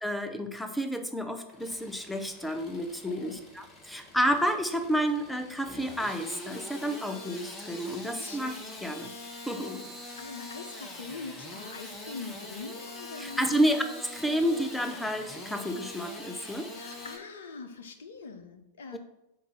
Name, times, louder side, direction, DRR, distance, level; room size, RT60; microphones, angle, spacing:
voice 1, 0.0-8.5 8.8-9.1 9.5-9.8 13.2-13.8 14.1-16.7 18.9-19.0, equal, 5° left, 7 dB, 0.7 m, -30 dB
Engine starting / Sawing, 1.4-17.2, left 2 dB, 25° left, 1.3 m, -44 dB
voice 2, 3.1-3.4 3.8-4.1 8.2-8.4 9.6-13.6 16.7-19.0, left 4 dB, 65° left, 8 dB, 0.7 m, -43 dB
7.4 x 2.7 x 5.7 m, 0.89 s
figure-of-eight pair, 90°, 0 cm